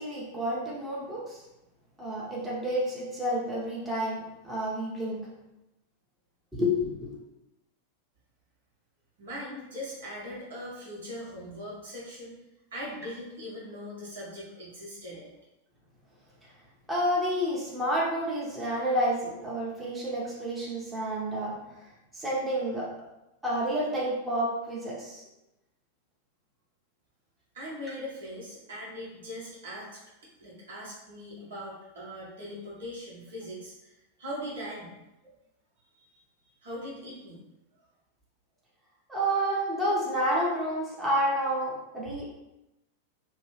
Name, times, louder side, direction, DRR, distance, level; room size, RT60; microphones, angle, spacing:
voice 1, 0.0-1.4 2.0-5.2 6.5-7.1 16.9-21.6 22.1-22.9 23.4-25.2 39.1-42.3, equal, 10° right, -6 dB, 0.8 m, -29 dB
voice 2, 9.2-12.4 12.7-15.3 27.5-30.0 30.4-35.0 35.9-36.2 36.6-37.4, equal, 65° right, -6 dB, 1.1 m, -40 dB
2.8 x 2.2 x 3.2 m, 0.95 s
figure-of-eight pair, 90°, 0 cm